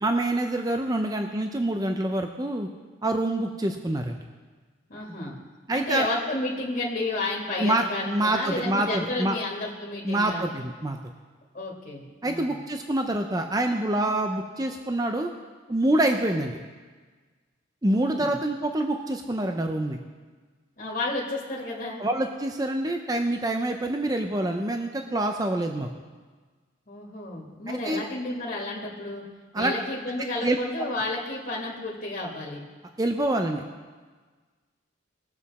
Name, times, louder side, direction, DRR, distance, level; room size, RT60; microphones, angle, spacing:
voice 1, 0.0-2.7 3.0-4.2 5.7-6.1 7.6-9.4 10.0-11.0 12.2-15.3 15.7-16.6 17.8-20.0 22.0-25.9 27.7-28.0 29.5-29.7 30.4-30.6 33.0-33.6, right 1 dB, 20° right, 4 dB, 0.5 m, -26 dB
voice 2, 4.9-5.4 5.7-10.5 11.5-12.6 17.9-18.3 20.8-22.0 26.9-29.2 29.5-32.6, left 2 dB, 40° left, -4 dB, 1.9 m, -31 dB
20.0 x 7.4 x 4.2 m, 1.4 s
head